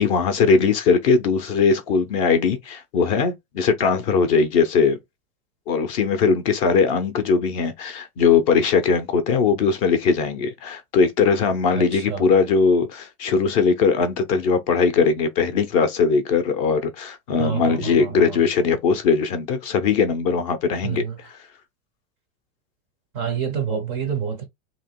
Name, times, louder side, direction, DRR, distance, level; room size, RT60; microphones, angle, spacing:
voice 1, 0.0-5.0 5.7-21.0, left 5 dB, 30° left, 0.5 m, -20 dB
voice 2, 11.7-12.2 17.4-18.4 20.8-21.2 23.1-24.5, right 7 dB, 25° right, 0.4 m, -28 dB
2.9 x 2.8 x 4.3 m
supercardioid pair, 175°, 34 cm